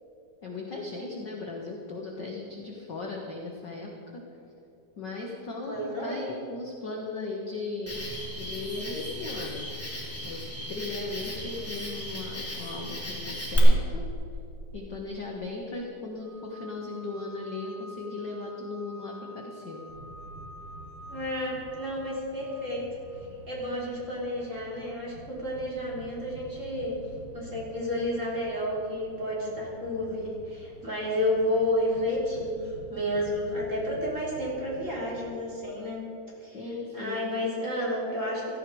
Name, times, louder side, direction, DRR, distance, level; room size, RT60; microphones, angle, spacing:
voice 1, 0.4-4.2 5.0-8.0 8.4-9.7 10.2-14.1 14.7-19.8 36.5-37.4, left 3 dB, 50° left, -1 dB, 1.3 m, -37 dB
voice 2, 5.7-6.2 21.1-22.9 23.5-26.9 27.3-36.0 36.4-36.6 36.9-38.6, left 1 dB, 20° right, -5 dB, 3.8 m, -31 dB
Cricket, 7.9-13.6, left 1 dB, 5° left, 2.6 m, -36 dB
sound 1, 16.2-24.0, left 1 dB, 70° right, 2.4 m, -49 dB
sound 2, 19.9-35.2, right 1 dB, 40° right, 4.4 m, -48 dB
16.5 x 14.0 x 4.8 m, 2.8 s
omnidirectional pair, 4.0 m